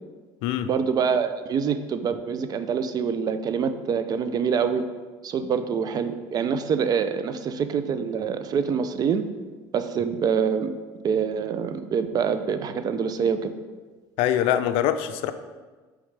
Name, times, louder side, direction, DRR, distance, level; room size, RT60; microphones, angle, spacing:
voice 1, 0.7-4.8 5.2-9.2 9.7-10.7 11.0-13.5, right 6 dB, 45° right, 10 dB, 0.5 m, -25 dB
voice 2, 14.2-15.3, left 11 dB, 75° left, 11 dB, 0.4 m, -23 dB
6.2 x 4.9 x 3.3 m, 1.3 s
supercardioid pair, 95°, 9 cm